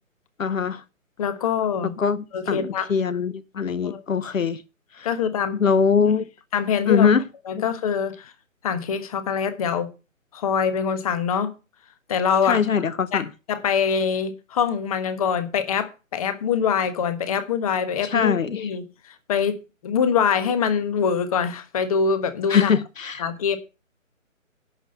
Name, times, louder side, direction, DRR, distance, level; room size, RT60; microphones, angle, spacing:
voice 1, 0.4-0.8 2.0-4.6 5.0-5.1 5.6-6.3 6.9-7.2 7.5-7.6 12.4-13.3 18.0-18.7 22.5-23.2, left 6 dB, 70° left, 0.9 m, -22 dB
voice 2, 1.2-1.9 2.3-2.9 3.8-4.0 5.0-5.6 6.5-7.1 7.5-8.3 8.6-9.9 10.3-11.5 12.1-12.6 13.1-13.2 13.5-18.8 19.3-19.6 19.8-22.7 23.2-23.6, left 7 dB, 25° left, 1.2 m, -24 dB
11.0 x 6.3 x 6.6 m
figure-of-eight pair, 145°, 41 cm